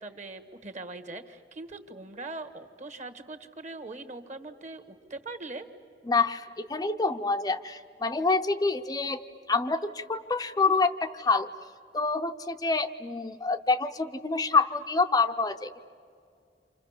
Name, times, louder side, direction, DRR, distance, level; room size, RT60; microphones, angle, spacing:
voice 1, 0.0-5.7, right 2 dB, 40° right, 7 dB, 1.5 m, -41 dB
voice 2, 6.1-9.2 9.5-11.5 11.9-15.8, left 4 dB, 20° left, 7 dB, 0.6 m, -27 dB
29.5 x 27.0 x 7.2 m, 2.3 s
head